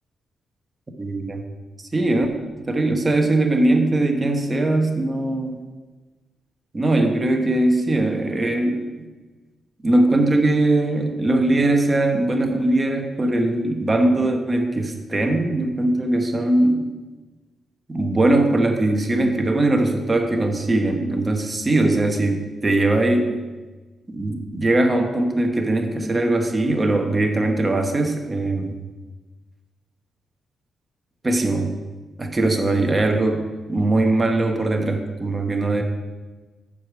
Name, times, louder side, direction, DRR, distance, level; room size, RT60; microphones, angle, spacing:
voice 1, 1.0-1.4 1.9-2.3 2.7-5.6 6.7-8.9 9.8-16.9 17.9-23.4 24.1-28.7 31.2-31.7 32.2-33.4 33.7-35.8, right 2 dB, 15° right, 3 dB, 1.0 m, -20 dB
10.0 x 4.9 x 7.4 m, 1.2 s
wide cardioid pair, 170°, 0 cm